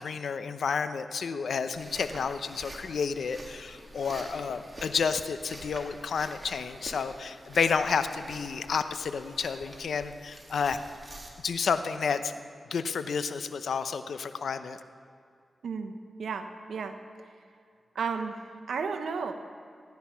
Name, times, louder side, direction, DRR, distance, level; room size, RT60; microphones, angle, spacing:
voice 1, 0.0-10.8 11.4-12.3 12.7-14.8, left 5 dB, 80° left, 10 dB, 0.7 m, -30 dB
sound 1, 1.7-11.3, right 1 dB, 25° right, 2.7 m, -47 dB
voice 2, 15.6-17.3 17.9-19.3, right 5 dB, 85° right, 7 dB, 1.0 m, -34 dB
16.5 x 10.5 x 5.7 m, 2.4 s
cardioid pair, 55°, 0 cm